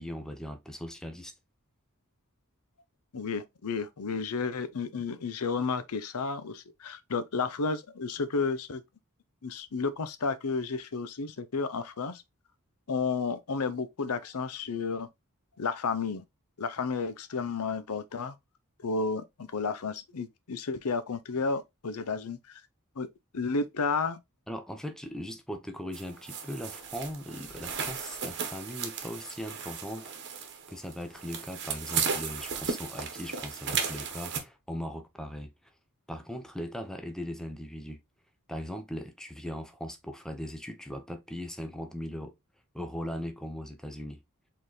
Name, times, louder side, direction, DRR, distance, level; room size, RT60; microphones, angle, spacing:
voice 1, 0.0-1.3 24.5-30.1 30.7-35.5 36.1-38.0 38.5-42.3 42.7-44.2, equal, 5° left, 0.7 m, -39 dB
voice 2, 3.1-8.8 9.4-12.2 12.9-15.1 15.6-16.2 16.6-18.3 18.8-22.6 23.0-23.1 23.3-24.2, left 4 dB, 80° left, 0.6 m, -32 dB
sound 1, 25.9-34.4, right 6 dB, 55° right, 1.1 m, -35 dB
4.5 x 3.7 x 3.1 m
head